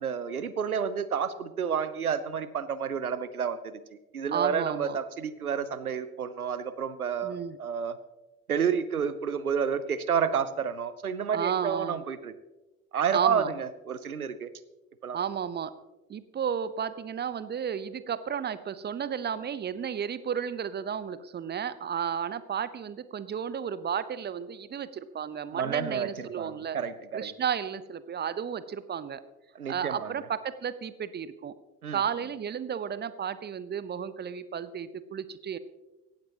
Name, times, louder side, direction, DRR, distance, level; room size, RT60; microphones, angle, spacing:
voice 1, 0.0-3.8 4.1-8.0 8.5-12.3 12.9-14.5 15.0-15.2 25.5-27.3 29.5-30.1 31.8-32.0, right 7 dB, 85° right, 15 dB, 0.7 m, -30 dB
voice 2, 4.3-5.0 7.2-7.6 11.3-12.0 13.1-13.5 15.1-15.7 16.1-26.8 27.1-29.2 29.7-31.5 31.9-35.6, right 8 dB, 25° right, 15 dB, 0.8 m, -33 dB
17.0 x 15.0 x 2.9 m, 1.1 s
figure-of-eight pair, 60°, 43 cm